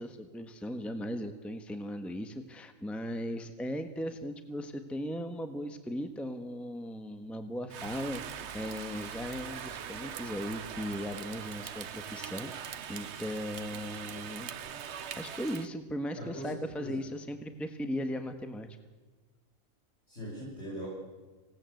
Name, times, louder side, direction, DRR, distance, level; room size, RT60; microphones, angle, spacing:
voice 1, 0.0-14.5 14.9-18.7, equal, ahead, 7 dB, 1.3 m, -38 dB
Rain, 7.7-15.7, right 8 dB, 60° right, 1.1 m, -42 dB
voice 2, 16.2-16.5 16.8-16.9 20.1-20.9, equal, 50° left, -5 dB, 6.1 m, -40 dB
26.0 x 18.5 x 7.9 m, 1.3 s
omnidirectional pair, 1.4 m